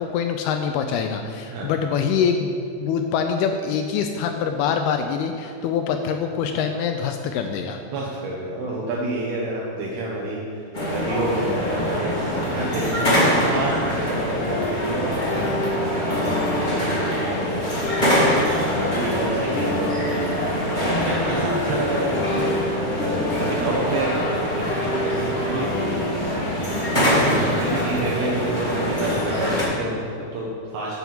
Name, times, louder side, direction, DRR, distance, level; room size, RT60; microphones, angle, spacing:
voice 1, 0.0-7.8, left 6 dB, 80° left, 5 dB, 2.4 m, -24 dB
voice 2, 7.9-12.2 12.5-13.0 13.4-16.5 18.6-20.4 21.0-24.3 24.6-25.7 26.7-31.0, right 2 dB, 75° right, -4 dB, 3.0 m, -29 dB
sound 1, 10.7-29.6, equal, 35° left, 0.7 m, -24 dB
sound 2, 13.6-27.4, equal, 65° left, 2.4 m, -30 dB
9.4 x 6.0 x 7.2 m, 2.5 s
omnidirectional pair, 4.8 m